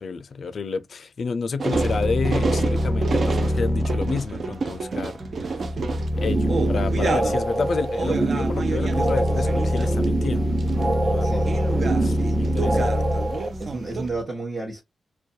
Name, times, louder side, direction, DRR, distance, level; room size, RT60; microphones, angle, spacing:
voice 1, 0.0-5.2 5.4-5.6 6.2-10.5 11.0-11.5 12.0-12.9, left 5 dB, 65° left, 0.4 m, -30 dB
sound 1, 1.6-7.4 7.7-10.3 10.6-10.9 11.5-14.1, right 4 dB, 60° right, 0.4 m, -29 dB
sound 2, 1.7-14.2, equal, ahead, 0.5 m, -25 dB
sound 3, 6.1-13.5, right 2 dB, 75° right, 1.1 m, -27 dB
voice 2, 11.2-11.6 12.4-12.8 13.6-14.8, right 2 dB, 35° right, 0.9 m, -32 dB
2.3 x 2.2 x 2.6 m
cardioid pair, 65°, 0 cm